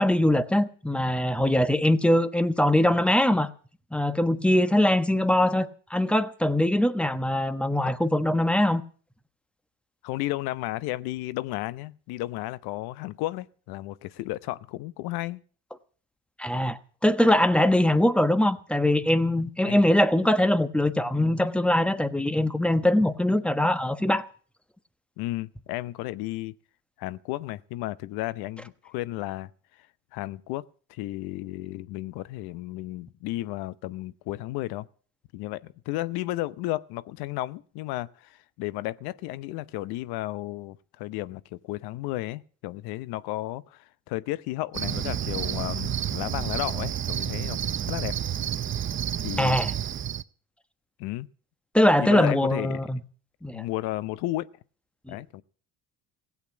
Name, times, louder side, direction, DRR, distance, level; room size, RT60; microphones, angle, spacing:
voice 1, 0.0-3.5 3.9-8.8 16.4-24.3 49.4-49.7 51.7-53.0 53.4-53.6 55.1-55.2, left 1 dB, 5° left, 1.1 m, -22 dB
voice 2, 10.0-15.4 19.6-19.8 25.2-26.5 27.0-29.9 30.1-30.6 30.9-34.9 35.3-48.2 49.2-49.6 51.0-51.3 52.0-52.8 53.5-54.5 55.1-55.4, left 17 dB, 80° left, 0.8 m, -33 dB
Cricket, 44.7-50.2, right 10 dB, 35° right, 0.6 m, -30 dB
16.5 x 8.3 x 8.5 m
supercardioid pair, 85°, 37 cm